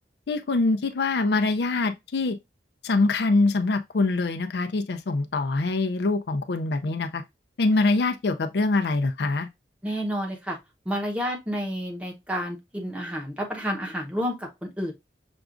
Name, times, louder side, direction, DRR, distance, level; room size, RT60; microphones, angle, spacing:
voice 1, 0.3-2.4 2.8-7.2 7.6-9.5, left 3 dB, 65° left, 0.4 m, -24 dB
voice 2, 9.8-10.6 10.9-14.9, equal, 5° right, 0.8 m, -30 dB
5.9 x 2.4 x 2.4 m
head